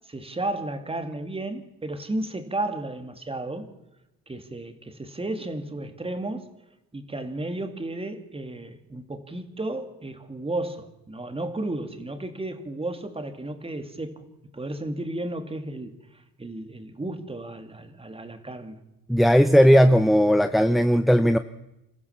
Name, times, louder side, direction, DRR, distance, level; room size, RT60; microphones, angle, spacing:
voice 1, 0.1-3.7 4.3-6.5 6.9-14.2 14.5-16.0 16.4-18.8, right 2 dB, 20° right, 7 dB, 2.6 m, -33 dB
voice 2, 19.1-21.4, equal, ahead, 11 dB, 0.7 m, -17 dB
28.0 x 14.5 x 7.2 m, 0.92 s
cardioid pair, 90°, 30 cm